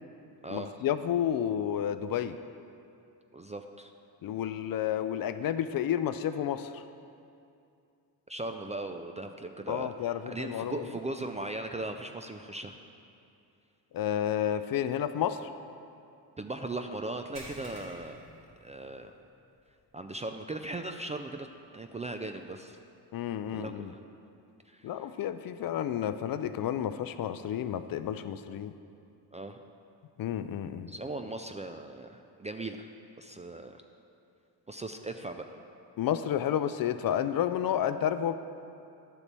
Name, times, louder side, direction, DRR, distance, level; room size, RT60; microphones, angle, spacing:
voice 1, 0.5-2.4 4.2-6.8 9.7-10.8 13.9-15.5 23.1-23.9 24.8-28.7 30.2-30.9 36.0-38.3, left 10 dB, 55° left, 11 dB, 0.5 m, -31 dB
voice 2, 3.3-3.9 8.3-12.8 16.4-18.2 18.6-19.1 19.9-21.5 21.7-22.8 23.5-24.0 24.7-25.1 29.3-29.6 30.9-32.9 33.2-33.8 34.7-35.5, right 2 dB, 20° right, 6 dB, 0.3 m, -38 dB
sound 1, 17.3-19.2 19.6-19.8 20.3-20.4 22.0-22.1, right 1 dB, 50° right, 2.4 m, -49 dB
10.0 x 4.2 x 6.7 m, 2.5 s
cardioid pair, 75°, 44 cm